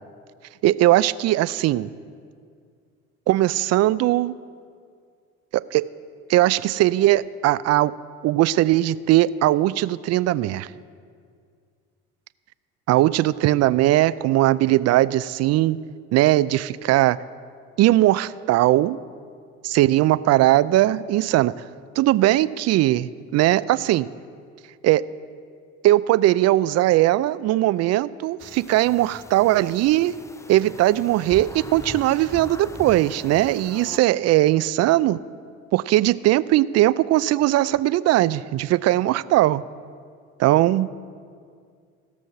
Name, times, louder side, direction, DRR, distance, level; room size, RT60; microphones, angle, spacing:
voice 1, 0.6-1.9 3.3-4.4 5.5-5.8 6.3-7.9 8.2-10.7 12.9-15.8 16.1-17.2 17.8-19.0 19.6-21.6 22.0-24.1 24.8-25.0 25.8-30.1 30.5-35.2 35.7-39.6 40.4-40.9, right 15 dB, 55° right, 18 dB, 0.4 m, -19 dB
sound 1, 28.4-34.0, left 2 dB, 10° left, 0.5 m, -41 dB
16.5 x 6.3 x 6.8 m, 2.1 s
supercardioid pair, 75°, 31 cm